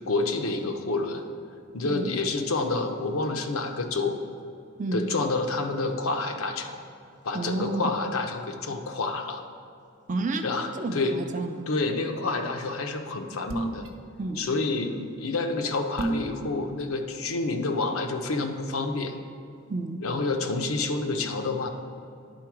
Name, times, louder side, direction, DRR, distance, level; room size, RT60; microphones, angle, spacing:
voice 1, 0.1-1.2 1.7-4.2 4.9-6.8 7.2-9.4 10.4-11.2 11.7-13.9 14.4-19.1 20.0-21.7, left 3 dB, 85° left, 5 dB, 0.7 m, -28 dB
voice 2, 7.3-7.9 10.1-11.6 14.2-14.5 19.7-20.0, right 3 dB, 35° right, 7 dB, 0.5 m, -30 dB
sound 1, 13.5-13.9 16.0-16.3, right 2 dB, 75° right, 0.8 m, -28 dB
10.5 x 3.8 x 4.8 m, 2.4 s
head